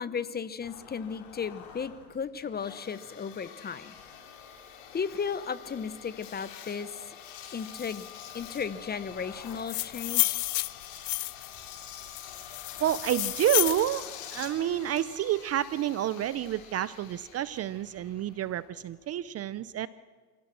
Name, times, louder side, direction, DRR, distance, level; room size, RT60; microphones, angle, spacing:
voice 1, 0.0-3.9 4.9-6.9 7.5-8.1 8.3-10.5, left 6 dB, 20° left, 16 dB, 1.0 m, -35 dB
Engine, 0.6-19.0, left 9 dB, 65° left, 3.8 m, -46 dB
sound 1, 9.5-11.5 12.1-13.8, left 22 dB, 85° left, 0.5 m, -30 dB
voice 2, 12.8-14.0 14.3-19.9, right 12 dB, 35° right, 17 dB, 0.6 m, -29 dB
28.0 x 17.0 x 6.3 m, 1.5 s
supercardioid pair, 105°, 45 cm